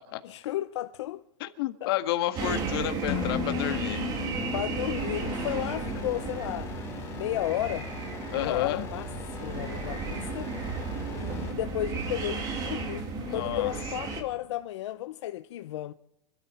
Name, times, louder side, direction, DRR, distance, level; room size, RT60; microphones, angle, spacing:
voice 1, 0.2-1.2 1.8-1.9 4.5-6.7 7.1-7.9 8.3-9.1 9.4-10.5 11.1-15.9, left 14 dB, 75° left, 0.7 m, -33 dB
voice 2, 1.4-4.0 5.9-6.0 8.3-8.9 13.2-13.7, left 14 dB, 55° left, 1.7 m, -31 dB
sound 1, 2.4-14.2, right 4 dB, 25° right, 2.3 m, -34 dB
sound 2, 3.1-6.9, left 14 dB, 35° left, 1.4 m, -37 dB
sound 3, 5.0-11.5, left 6 dB, 15° left, 3.2 m, -43 dB
26.0 x 13.0 x 4.3 m
supercardioid pair, 175°, 15 cm